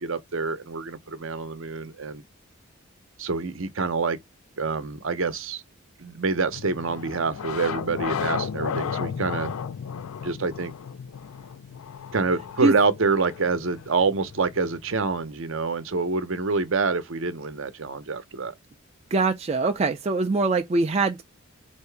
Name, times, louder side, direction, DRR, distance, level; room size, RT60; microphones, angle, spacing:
voice 1, 0.0-2.2 3.2-4.2 4.6-5.6 6.0-9.5 10.2-10.7 12.1-18.5, right 4 dB, 65° right, 0.7 m, -26 dB
sound 1, 6.5-15.3, left 7 dB, 85° left, 0.4 m, -34 dB
voice 2, 19.1-21.2, right 3 dB, 30° right, 0.4 m, -23 dB
4.6 x 2.7 x 3.3 m
head